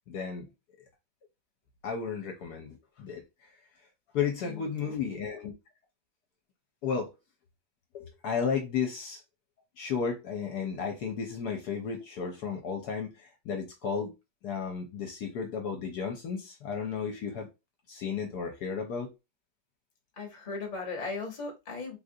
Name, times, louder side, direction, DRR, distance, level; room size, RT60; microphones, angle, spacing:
voice 1, 0.1-0.5 1.8-3.5 4.1-5.5 6.8-7.1 7.9-9.2 9.8-14.1 14.4-17.5 17.9-19.1, left 6 dB, 70° left, 1.1 m, -33 dB
voice 2, 4.4-5.3 20.2-22.0, left 3 dB, 30° left, 1.0 m, -38 dB
3.7 x 2.4 x 2.6 m
omnidirectional pair, 1.9 m